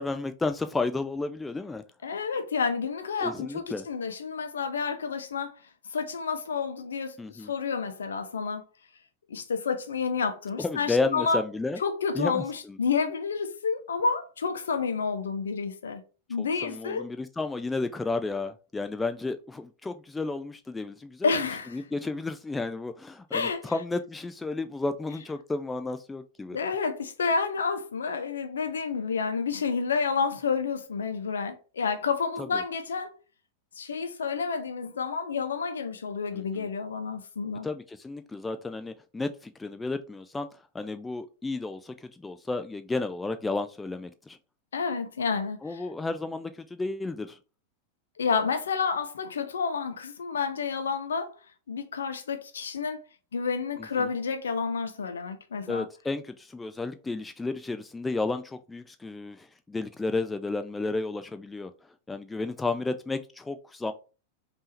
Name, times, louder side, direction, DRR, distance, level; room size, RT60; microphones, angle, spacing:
voice 1, 0.0-1.8 3.2-3.8 7.2-7.5 10.6-11.8 12.1-12.8 16.4-21.3 21.7-26.6 32.5-32.6 36.3-36.7 37.6-40.5 40.7-44.4 45.6-47.4 53.8-54.1 55.7-61.7 62.1-63.9, left 3 dB, 10° left, 0.4 m, -32 dB
voice 2, 2.0-5.5 5.9-8.6 9.3-11.4 11.8-16.0 16.3-17.1 21.2-21.8 23.3-23.6 26.5-33.1 33.8-37.7 44.7-45.8 48.2-51.3 51.7-53.0 53.3-55.9, left 5 dB, 65° left, 0.7 m, -30 dB
5.3 x 2.7 x 3.2 m
figure-of-eight pair, 90°, 0 cm